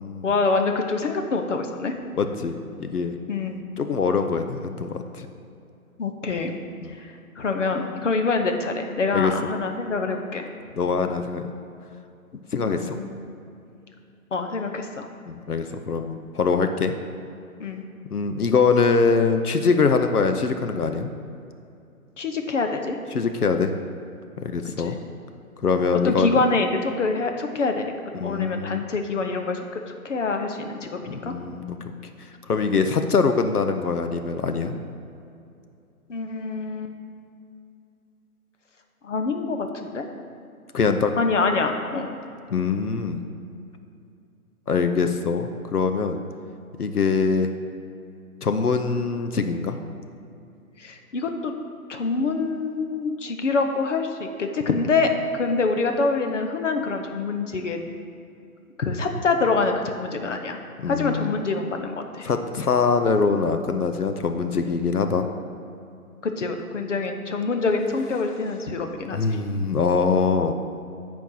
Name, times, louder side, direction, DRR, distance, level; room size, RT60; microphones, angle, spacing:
voice 1, 0.2-1.9 3.3-3.6 6.0-6.5 7.0-10.5 12.6-13.2 14.3-15.1 17.6-17.8 22.2-23.0 24.8-24.9 26.0-27.9 28.2-29.7 30.0-31.3 36.1-36.9 39.0-40.1 41.2-42.1 50.8-51.5 51.9-57.8 58.8-60.6 60.9-62.3 66.2-69.4, left 3 dB, 55° left, 5 dB, 1.0 m, -25 dB
voice 2, 2.2-3.2 3.8-5.3 6.8-6.9 9.1-9.3 10.8-11.5 12.5-13.0 15.3-16.9 18.1-21.1 23.1-23.7 24.4-25.0 25.6-26.4 28.1-28.8 31.0-31.8 32.5-34.8 40.7-41.1 42.5-43.2 44.7-46.2 46.8-47.5 48.4-49.8 60.8-61.4 62.2-65.3 69.1-70.5, left 5 dB, 85° left, 7 dB, 0.8 m, -23 dB
8.3 x 4.6 x 7.3 m, 2.5 s
figure-of-eight pair, 150°, 45 cm